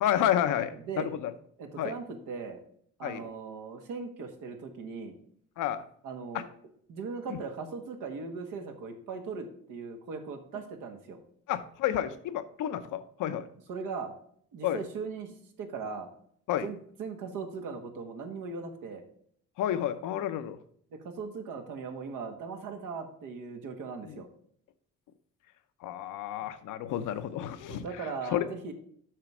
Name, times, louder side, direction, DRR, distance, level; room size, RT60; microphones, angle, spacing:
voice 1, 0.0-1.3 1.8-1.9 3.0-3.2 5.6-5.8 6.3-6.4 11.5-13.5 14.6-14.8 16.5-16.7 19.6-20.6 24.0-24.2 25.8-28.1 28.3-28.7, left 11 dB, 90° left, 11 dB, 0.8 m, -30 dB
voice 2, 0.7-1.1 1.6-2.6 3.0-5.2 6.0-6.5 6.9-11.2 13.4-14.1 14.5-16.1 16.6-19.0 20.9-24.3 27.7-28.7, right 5 dB, 90° right, 4 dB, 1.6 m, -39 dB
7.6 x 5.9 x 4.9 m, 0.64 s
cardioid pair, 90°, 30 cm